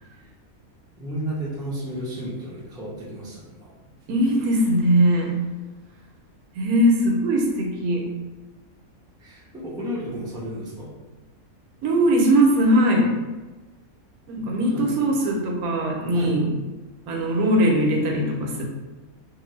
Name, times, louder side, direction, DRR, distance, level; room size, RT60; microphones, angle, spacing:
voice 1, 1.0-3.7 9.2-10.9 14.4-14.9 16.1-16.3, right 1 dB, 5° right, -7 dB, 0.3 m, -33 dB
voice 2, 4.1-5.3 6.6-8.1 11.8-13.1 14.3-16.5 17.1-18.6, right 1 dB, 90° right, 0 dB, 1.1 m, -20 dB
2.6 x 2.5 x 3.0 m, 1.2 s
omnidirectional pair, 1.5 m